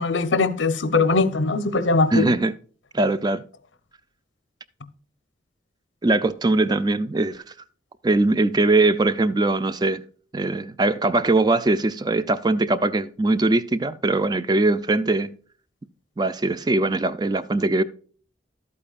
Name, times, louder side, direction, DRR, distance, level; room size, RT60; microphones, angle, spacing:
voice 1, 0.0-2.3, left 3 dB, 80° left, 0.8 m, -21 dB
voice 2, 2.1-2.5 2.9-3.5 6.0-7.5 8.0-10.0 10.3-15.3 16.2-17.8, right 2 dB, 20° right, 0.4 m, -21 dB
12.0 x 8.5 x 2.4 m
head